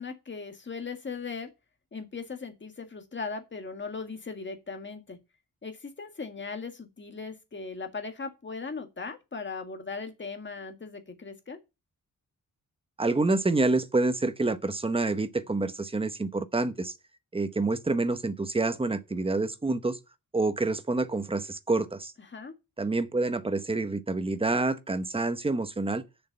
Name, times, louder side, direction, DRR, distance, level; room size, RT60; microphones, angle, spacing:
voice 1, 0.0-1.5 1.9-5.2 5.6-11.6 22.3-22.5, left 4 dB, 35° left, 1.9 m, -38 dB
voice 2, 13.0-16.9 17.3-20.0 20.3-22.1 22.8-26.0, right 3 dB, 15° right, 0.9 m, -27 dB
6.9 x 6.5 x 7.9 m
wide cardioid pair, 170°, 34 cm